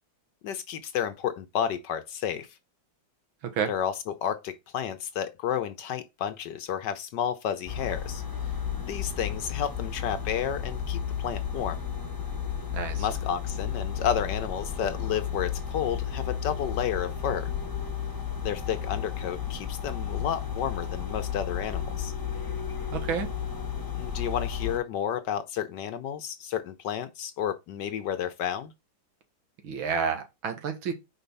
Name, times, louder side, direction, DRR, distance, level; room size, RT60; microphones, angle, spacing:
voice 1, 0.4-2.5 3.7-8.2 8.8-11.8 13.0-17.5 18.4-22.1 23.9-28.7, left 9 dB, 70° left, 1.2 m, -31 dB
sound 1, 7.7-24.8, left 8 dB, 15° left, 0.7 m, -33 dB
voice 2, 12.7-13.1 22.9-23.3 29.6-30.9, right 6 dB, 75° right, 2.1 m, -30 dB
5.0 x 4.6 x 5.3 m
omnidirectional pair, 2.2 m